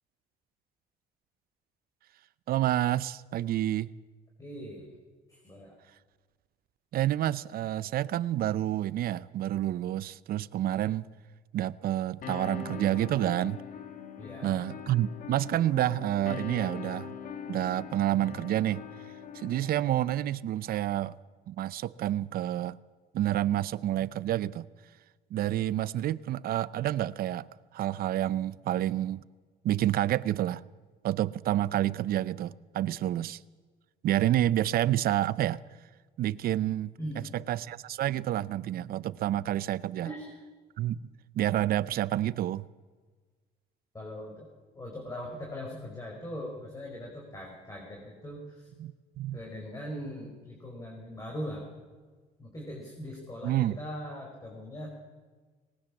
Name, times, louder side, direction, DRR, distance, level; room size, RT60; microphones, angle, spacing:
voice 1, 2.5-3.9 6.9-11.1 11.5-13.6 14.4-17.1 17.5-18.9 19.3-21.1 21.5-22.8 23.1-24.7 25.3-27.5 27.7-29.2 29.6-30.6 31.0-33.4 34.0-35.6 36.2-36.9 37.3-40.1 40.8-42.7 48.8-49.4 53.4-53.8, right 13 dB, 60° right, 0.7 m, -29 dB
voice 2, 4.4-4.9 5.3-5.8 14.2-14.6 37.0-37.4 40.0-40.3 43.9-44.5 44.7-48.7 49.3-51.7 52.4-54.9, equal, 20° left, 5.0 m, -40 dB
sound 1, 12.2-20.3, left 8 dB, 55° left, 1.9 m, -42 dB
19.5 x 19.0 x 7.3 m
cardioid pair, 110°, 17 cm